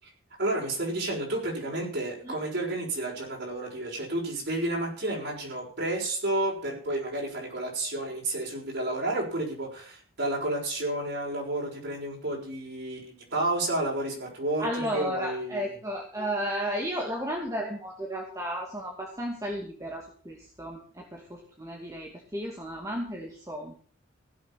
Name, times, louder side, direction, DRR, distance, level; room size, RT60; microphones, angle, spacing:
voice 1, 0.4-15.8, right 1 dB, 55° right, -2 dB, 6.3 m, -31 dB
voice 2, 14.6-23.7, equal, 15° right, -1 dB, 2.4 m, -33 dB
16.5 x 7.7 x 7.5 m, 0.43 s
head